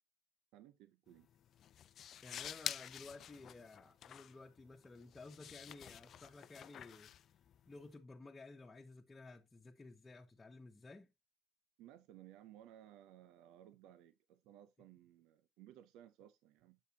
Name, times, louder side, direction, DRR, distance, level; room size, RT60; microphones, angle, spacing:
voice 1, 0.5-1.3 11.8-16.8, right 12 dB, 75° right, 0.6 m, -59 dB
sound 1, 1.1-7.9, left 10 dB, 60° left, 0.5 m, -49 dB
voice 2, 2.2-7.1 7.6-11.1, left 3 dB, 25° left, 1.2 m, -55 dB
8.1 x 6.4 x 2.7 m
hypercardioid pair, 55°, 0 cm